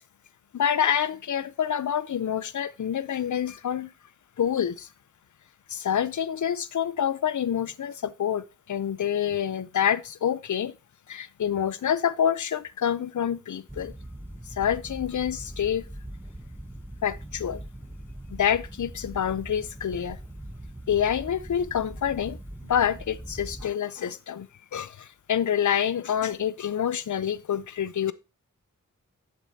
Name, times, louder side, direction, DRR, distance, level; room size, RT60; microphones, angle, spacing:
voice 1, 0.5-3.9 4.4-4.9 5.7-10.7 11.1-13.9 14.6-15.8 17.0-17.6 18.3-20.2 20.9-22.4 22.6-24.5 24.7-28.1, left 9 dB, 65° left, 0.6 m, -27 dB
sound 1, 13.7-23.7, right 1 dB, 5° right, 0.8 m, -41 dB
7.6 x 6.8 x 2.8 m
cardioid pair, 45°, 32 cm